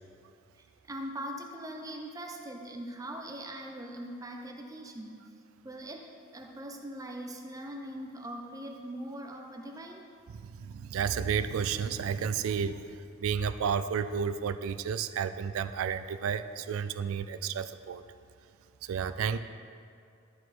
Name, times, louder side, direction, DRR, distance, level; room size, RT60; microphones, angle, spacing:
voice 1, 0.5-5.2 5.6-10.1, right 1 dB, 15° right, 2 dB, 0.5 m, -41 dB
voice 2, 10.3-18.0 18.8-19.4, right 7 dB, 75° right, 12 dB, 0.3 m, -32 dB
12.5 x 4.6 x 4.2 m, 2.5 s
head